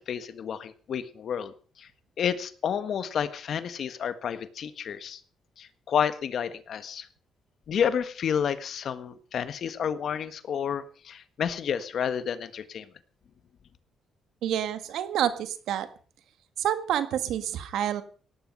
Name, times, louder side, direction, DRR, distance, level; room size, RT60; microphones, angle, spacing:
voice 1, 0.0-1.9 2.2-5.2 5.6-7.1 7.7-12.9, left 8 dB, 60° left, 13 dB, 1.5 m, -30 dB
voice 2, 14.4-15.9 16.6-18.0, right 10 dB, 80° right, 11 dB, 1.8 m, -28 dB
17.5 x 12.0 x 5.4 m, 0.43 s
cardioid pair, 90°, 0 cm